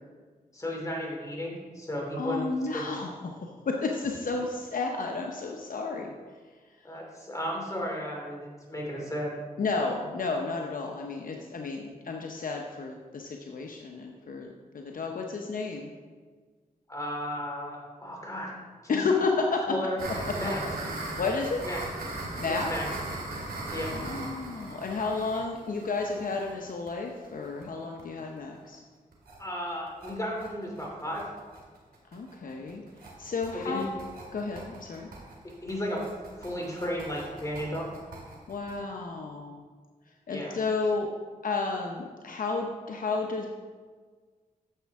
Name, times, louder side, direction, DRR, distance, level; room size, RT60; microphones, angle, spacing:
voice 1, 0.5-2.5 2.7-2.9 6.8-9.3 16.9-18.5 18.8-19.0 19.7-20.6 21.6-21.8 22.5-22.8 23.7-23.9 29.4-31.2 33.5-33.8 35.6-36.0 36.4-37.9 40.3-40.6, equal, 20° left, -2 dB, 2.7 m, -34 dB
voice 2, 2.2-3.4 3.7-6.1 9.6-14.5 14.7-15.9 18.9-19.7 21.2-21.6 22.4-22.7 23.9-28.8 32.1-32.8 33.2-33.9 34.3-35.1 38.5-39.6 40.3-41.1 41.4-43.5, left 4 dB, 65° left, 1 dB, 0.8 m, -31 dB
sound 1, 20.0-27.6 28.0-28.1 28.4-28.5 28.7-28.8 29.1-29.4 29.7-38.8, right 2 dB, 80° right, 2.2 m, -39 dB
10.0 x 7.3 x 3.5 m, 1.5 s
cardioid pair, 70°, 15 cm